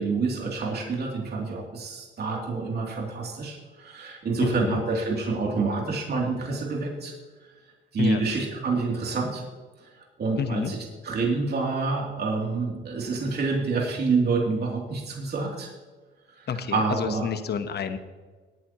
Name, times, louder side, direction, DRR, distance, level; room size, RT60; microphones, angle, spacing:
voice 1, 0.0-7.1 7.9-9.4 9.8-9.9 10.2-10.8 11.0-15.7 16.4-17.3, right 3 dB, 55° right, -1 dB, 3.0 m, -27 dB
voice 2, 4.4-4.8 8.0-8.2 10.4-10.7 16.5-18.0, left 7 dB, 55° left, 10 dB, 1.1 m, -29 dB
19.5 x 9.5 x 3.0 m, 1.4 s
cardioid pair, 90°, 20 cm